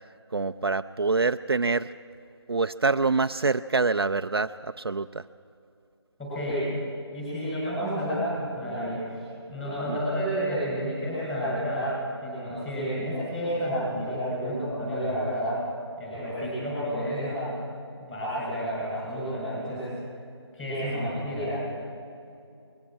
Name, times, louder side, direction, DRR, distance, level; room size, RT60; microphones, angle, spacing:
voice 1, 0.3-1.9 2.5-5.3 9.9-10.0, right 4 dB, 55° right, 9 dB, 0.5 m, -26 dB
voice 2, 6.2-6.7 7.1-9.2 9.5-15.5 16.0-17.5 17.9-19.9 20.5-21.6, equal, 5° left, -9 dB, 6.7 m, -30 dB
21.5 x 16.0 x 9.3 m, 2.5 s
figure-of-eight pair, 175°, 15 cm